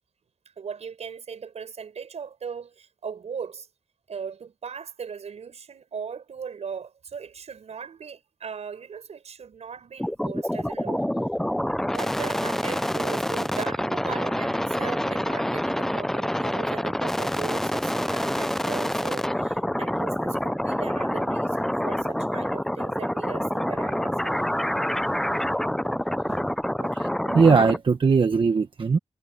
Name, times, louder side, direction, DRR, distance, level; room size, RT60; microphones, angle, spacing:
voice 1, 0.6-3.7 4.1-11.1 11.8-24.4 26.3-26.6, right 6 dB, 80° right, 6.9 m, -38 dB
sound 1, 10.0-27.8, equal, 5° left, 0.4 m, -27 dB
voice 2, 26.8-29.0, right 5 dB, 50° right, 1.2 m, -20 dB
wide cardioid pair, 110°, 11 cm